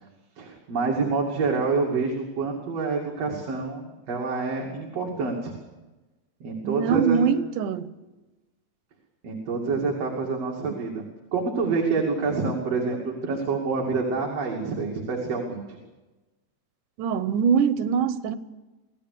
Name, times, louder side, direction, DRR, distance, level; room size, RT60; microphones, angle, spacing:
voice 1, 0.4-5.5 6.4-7.2 9.2-11.0 11.3-15.8, right 4 dB, 55° right, 3.6 m, -27 dB
voice 2, 6.6-7.9 17.0-18.4, right 6 dB, 85° right, 2.5 m, -23 dB
26.0 x 17.5 x 6.8 m
omnidirectional pair, 3.5 m